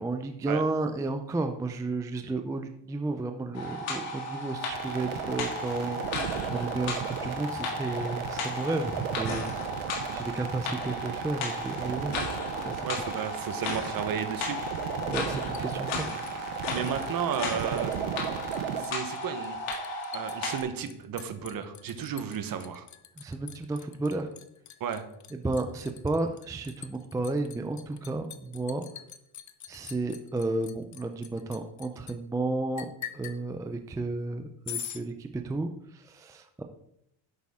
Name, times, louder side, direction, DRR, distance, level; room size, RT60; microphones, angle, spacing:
voice 1, 0.0-6.0 6.5-9.6 10.1-12.1 12.7-12.9 15.0-16.1 23.2-24.3 25.3-28.9 29.7-36.6, right 2 dB, 10° right, 6 dB, 0.4 m, -32 dB
sound 1, 3.5-20.6, left 1 dB, 80° left, 2.9 m, -35 dB
sound 2, 4.7-18.8, right 9 dB, 80° right, 1.0 m, -36 dB
voice 2, 12.8-14.6 16.7-17.9 18.8-19.6 20.1-22.9 24.8-25.1, right 8 dB, 45° right, 9 dB, 1.1 m, -33 dB
Liquid, 15.2-17.1 17.3-18.0 18.2-32.2 32.8-33.4 34.7-35.0, left 10 dB, 40° left, 0.7 m, -44 dB
10.5 x 8.3 x 3.6 m, 0.77 s
cardioid pair, 145°, 47 cm